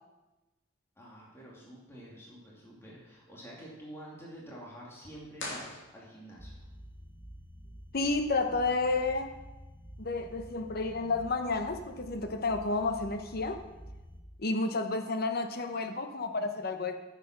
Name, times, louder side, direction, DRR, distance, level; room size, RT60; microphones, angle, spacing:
voice 1, 1.0-6.6, right 1 dB, 15° left, -5 dB, 2.4 m, -48 dB
sound 1, 5.3-6.5, left 2 dB, 70° left, 2.7 m, -42 dB
sound 2, 6.4-14.2, equal, 15° right, 1.2 m, -49 dB
voice 2, 7.9-9.3 10.0-13.6 14.4-17.0, left 3 dB, 50° left, 7 dB, 0.9 m, -31 dB
9.5 x 7.3 x 5.9 m, 1.1 s
head